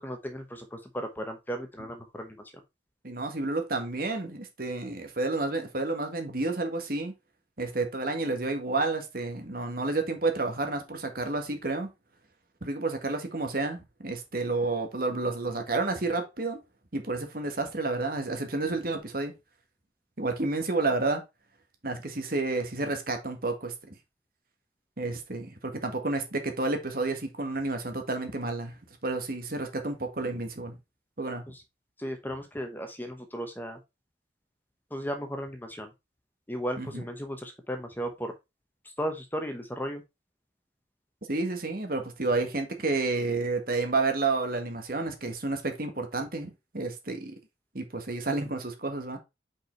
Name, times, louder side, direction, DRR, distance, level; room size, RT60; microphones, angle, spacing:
voice 1, 0.0-2.4 31.5-31.6 32.0-33.8 34.9-35.9 36.5-38.3 39.0-40.0, equal, 10° left, 0.9 m, -35 dB
voice 2, 3.0-7.1 7.6-11.9 12.6-16.6 16.9-19.3 20.2-21.2 21.8-23.7 25.0-28.7 29.0-30.8 31.2-31.4 36.8-37.0 41.3-47.3 47.7-49.2, right 3 dB, 50° right, 1.6 m, -30 dB
5.5 x 4.9 x 4.5 m
head